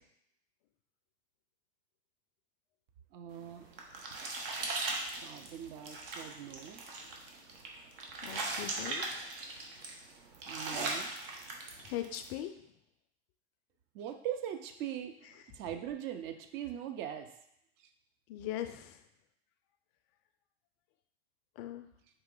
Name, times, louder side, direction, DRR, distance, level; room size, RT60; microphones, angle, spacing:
voice 1, 3.1-3.7 5.2-6.8 7.3-7.4 10.4-11.2 13.9-17.3 17.8-17.9, right 10 dB, 35° right, 7 dB, 0.5 m, -41 dB
sound 1, 3.4-12.3, right 3 dB, 60° right, 1.0 m, -39 dB
voice 2, 8.2-9.0 11.9-12.5 18.3-18.9 21.6-21.9, left 12 dB, 40° left, 9 dB, 0.4 m, -39 dB
4.3 x 2.9 x 3.7 m, 0.75 s
hypercardioid pair, 115°, 32 cm